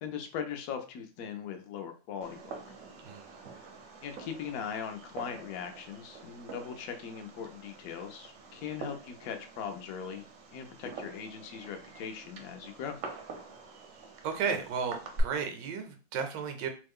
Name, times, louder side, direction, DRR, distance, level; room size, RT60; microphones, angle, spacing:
voice 1, 0.0-2.6 4.0-10.3 10.5-13.0, left 7 dB, 70° left, 5 dB, 0.9 m, -40 dB
Fireworks, 2.2-15.2, right 3 dB, 65° right, 0.8 m, -46 dB
voice 2, 14.2-16.7, right 6 dB, 85° right, 6 dB, 1.3 m, -34 dB
3.1 x 2.1 x 3.5 m, 0.35 s
omnidirectional pair, 1.9 m